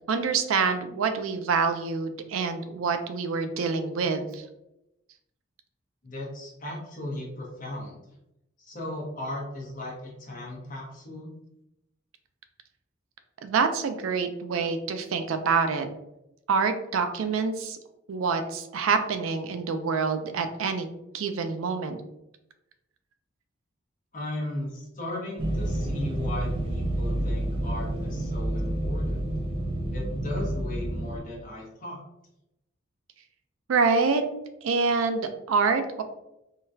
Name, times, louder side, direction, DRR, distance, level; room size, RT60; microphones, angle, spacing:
voice 1, 0.1-4.4 13.4-15.9 16.5-17.8 18.1-22.0 33.7-34.2 34.6-36.0, right 5 dB, 85° right, 8 dB, 0.4 m, -26 dB
voice 2, 6.0-8.0 8.6-11.3 24.1-29.2 29.9-32.0, left 1 dB, 40° left, -3 dB, 1.0 m, -36 dB
sound 1, 25.4-31.2, right 1 dB, 25° right, 0.4 m, -29 dB
3.7 x 2.2 x 2.6 m, 0.88 s
head